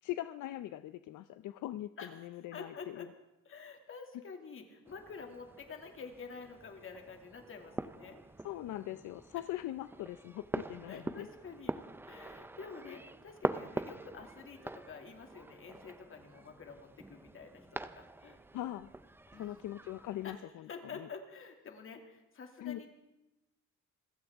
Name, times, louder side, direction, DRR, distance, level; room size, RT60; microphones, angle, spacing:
voice 1, 0.0-3.1 8.4-11.3 18.5-18.9 19.4-20.7 20.9-21.1 22.6-22.8, left 13 dB, 75° left, 12 dB, 0.6 m, -41 dB
voice 2, 2.0-3.1 3.4-8.2 9.4-9.5 10.9-11.7 12.0-18.4 19.3-19.7 20.2-22.9, left 5 dB, 45° left, 4 dB, 2.4 m, -49 dB
sound 1, 4.9-20.4, right 2 dB, 5° right, 0.4 m, -44 dB
26.0 x 15.0 x 3.6 m, 0.97 s
cardioid pair, 160°, 30 cm